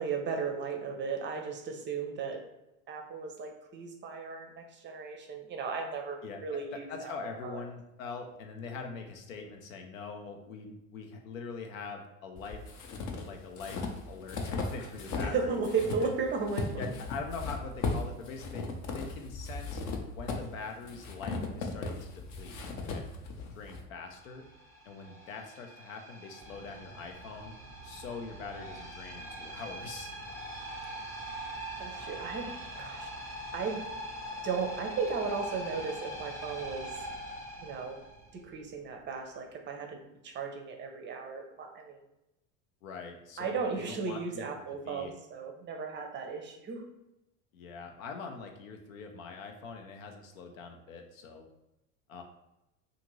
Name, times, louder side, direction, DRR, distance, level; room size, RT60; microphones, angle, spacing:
voice 1, 0.0-2.4 2.9-7.1 7.4-7.6 15.2-16.9 31.8-32.5 32.8-33.1 33.5-33.8 34.4-36.9 37.6-38.0 38.3-40.0 40.2-42.0 43.4-46.8, right 5 dB, 30° right, 3 dB, 0.5 m, -35 dB
voice 2, 6.2-12.7 13.1-15.6 16.0-16.1 16.8-19.8 20.1-23.1 23.6-24.5 24.9-27.5 27.8-30.1 42.8-45.1 47.5-51.4 52.1-52.2, left 4 dB, 80° left, 4 dB, 0.6 m, -43 dB
sound 1, 12.4-15.4 15.6-23.8, left 3 dB, 45° left, 0.6 m, -37 dB
sound 2, 24.1-38.6, right 1 dB, 5° left, 0.8 m, -42 dB
2.5 x 2.5 x 3.0 m, 0.89 s
hypercardioid pair, 85°, 40 cm